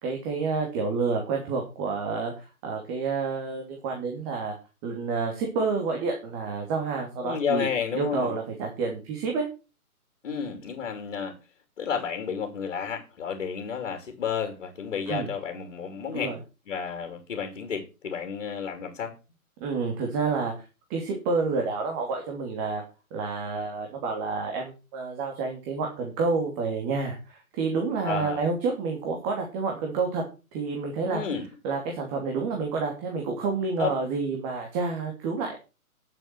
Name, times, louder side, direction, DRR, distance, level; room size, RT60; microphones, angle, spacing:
voice 1, 0.0-4.5 4.8-7.7 7.9-9.5 15.1-15.3 16.1-16.4 19.6-20.5 20.9-22.8 23.1-30.2 30.5-31.2 31.6-35.6, right 4 dB, 20° right, 2 dB, 2.8 m, -29 dB
voice 2, 7.2-8.3 10.2-11.3 11.8-16.3 16.7-19.1 28.0-28.4 31.1-31.5 33.8-33.9, left 7 dB, 50° left, 7 dB, 3.1 m, -31 dB
11.5 x 7.8 x 6.1 m, 0.32 s
hypercardioid pair, 150°, 44 cm